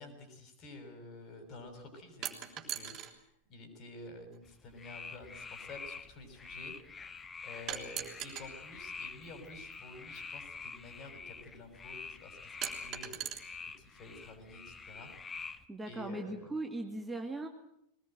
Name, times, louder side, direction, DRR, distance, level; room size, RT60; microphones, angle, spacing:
voice 1, 0.0-6.7 7.4-13.4 13.8-15.1 15.8-16.4, left 2 dB, 35° left, 7 dB, 6.6 m, -50 dB
sound 1, 2.2-3.1 4.3-4.4 7.7-8.5 9.9-10.0 12.6-13.4, right 11 dB, 35° right, 3.9 m, -39 dB
sound 2, 4.4-15.6, left 5 dB, 15° left, 1.3 m, -47 dB
voice 2, 15.7-17.5, right 2 dB, 10° right, 3 dB, 2.1 m, -39 dB
22.0 x 19.5 x 9.2 m, 0.77 s
figure-of-eight pair, 90°, 0 cm